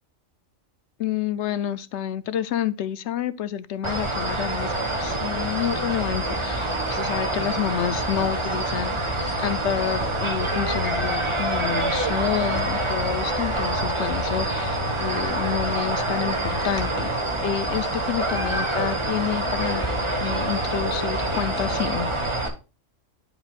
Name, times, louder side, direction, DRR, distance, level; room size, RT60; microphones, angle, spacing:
voice 1, 1.0-4.7 5.0-8.9 9.4-17.1 17.4-19.8 20.2-22.1, left 10 dB, 65° left, 0.9 m, -29 dB
sound 1, 3.8-22.5, right 1 dB, 25° right, 1.5 m, -26 dB
12.5 x 5.1 x 2.4 m
omnidirectional pair, 1.3 m